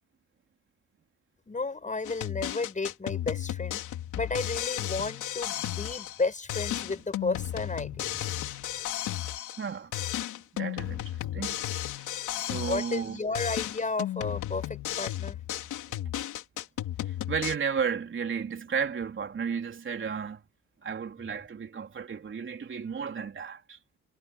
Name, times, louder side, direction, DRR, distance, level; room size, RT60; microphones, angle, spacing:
voice 1, 1.5-3.8 4.2-8.5 12.5-15.4, left 3 dB, 25° left, 6.9 m, -33 dB
sound 1, 2.0-6.2 6.5-9.7 9.9-13.1 13.3-17.6, left 12 dB, 80° left, 3.6 m, -34 dB
voice 2, 9.6-9.9 10.5-11.5 12.4-13.2 17.3-20.4 20.8-23.8, right 6 dB, 40° right, 3.4 m, -33 dB
cardioid pair, 90°, 30 cm